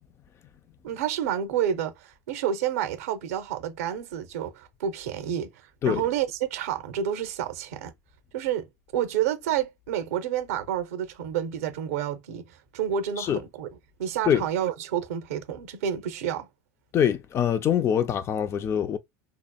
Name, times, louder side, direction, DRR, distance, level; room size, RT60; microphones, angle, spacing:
voice 1, 0.8-7.9 8.3-8.7 8.9-13.7 14.0-16.5, right 9 dB, 80° right, 0.7 m, -29 dB
voice 2, 16.9-19.0, left 9 dB, 35° left, 0.4 m, -24 dB
2.7 x 2.1 x 2.2 m
hypercardioid pair, 95°, 8 cm